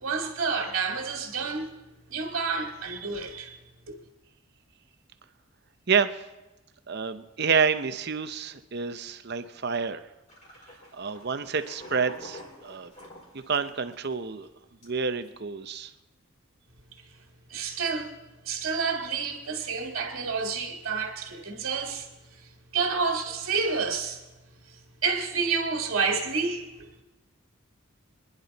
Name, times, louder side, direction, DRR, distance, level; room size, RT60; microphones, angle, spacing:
voice 1, 0.0-1.7 2.1-3.6 3.9-4.0 17.5-18.1 18.5-22.1 22.7-24.2 25.0-26.6, right 5 dB, 65° right, 1 dB, 1.8 m, -29 dB
voice 2, 6.9-10.0 10.9-12.9 13.3-14.5 14.8-15.9, right 5 dB, 50° right, 10 dB, 0.7 m, -28 dB
sound 1, 10.3-14.1 14.4-14.5 14.8-15.3, left 1 dB, 35° left, 4.6 m, -46 dB
26.5 x 10.5 x 4.1 m, 1.1 s
head